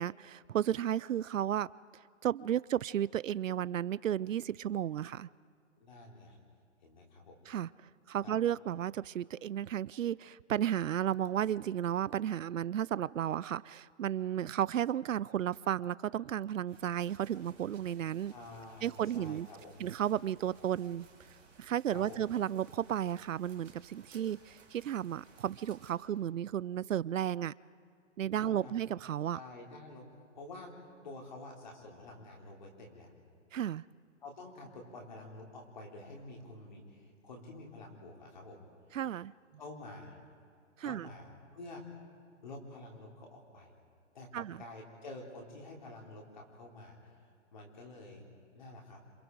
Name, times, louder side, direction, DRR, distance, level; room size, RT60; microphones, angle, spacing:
voice 1, 0.0-1.7 2.2-5.3 7.5-7.7 8.1-18.3 18.8-19.5 19.8-21.1 21.6-27.5 28.2-29.4 33.5-33.8 38.9-39.3 40.8-41.1 44.3-44.6, right 10 dB, 85° right, 21 dB, 0.5 m, -33 dB
voice 2, 5.8-6.4 6.8-7.5 8.2-8.3 18.3-19.8 21.9-22.2 28.4-28.7 29.3-30.0 30.3-30.7 31.0-33.1 34.2-38.6 39.6-40.2 40.8-42.0 42.4-43.7 44.1-48.3 48.5-49.0, left 2 dB, 35° left, -1 dB, 3.7 m, -49 dB
sound 1, 16.7-25.9, right 4 dB, 10° right, 1.8 m, -60 dB
27.0 x 26.5 x 4.7 m, 2.2 s
hypercardioid pair, 175°, 38 cm